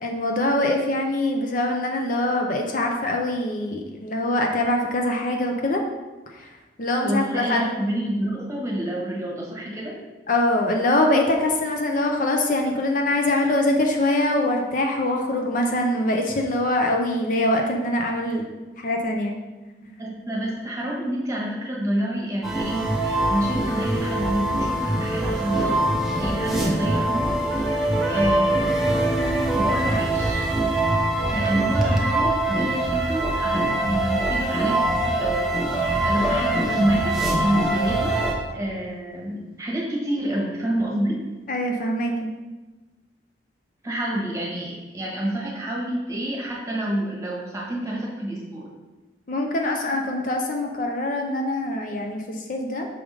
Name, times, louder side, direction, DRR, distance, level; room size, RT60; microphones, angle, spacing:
voice 1, 0.0-5.8 6.3-7.7 10.3-18.5 18.8-19.4 31.8-32.0 41.5-42.3 49.3-52.9, left 1 dB, 45° left, 2 dB, 0.6 m, -23 dB
voice 2, 7.0-10.0 20.0-25.9 26.2-28.9 29.5-30.4 31.3-35.5 35.8-38.2 38.5-41.3 43.8-48.7, right 1 dB, 15° right, -3 dB, 1.2 m, -28 dB
sound 1, 22.4-38.3, right 1 dB, ahead, 0.7 m, -23 dB
6.2 x 3.5 x 4.8 m, 1.2 s
head